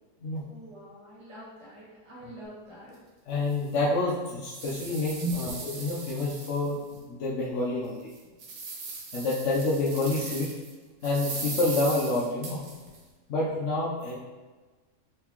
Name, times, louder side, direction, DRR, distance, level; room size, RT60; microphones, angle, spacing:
voice 1, 0.5-2.9 5.2-5.3 8.2-8.3, right 4 dB, 20° right, -7 dB, 1.0 m, -40 dB
sound 1, 2.9-3.0 3.5-3.6 4.1-7.0 7.4-7.5 8.0-10.7 11.0-13.0, right 3 dB, 75° right, 1.4 m, -39 dB
voice 2, 3.3-5.5 5.8-6.8 7.1-8.1 9.1-10.5 11.0-12.6 13.3-14.2, left 2 dB, 65° left, -5 dB, 0.7 m, -28 dB
3.9 x 3.6 x 2.9 m, 1.3 s
omnidirectional pair, 1.9 m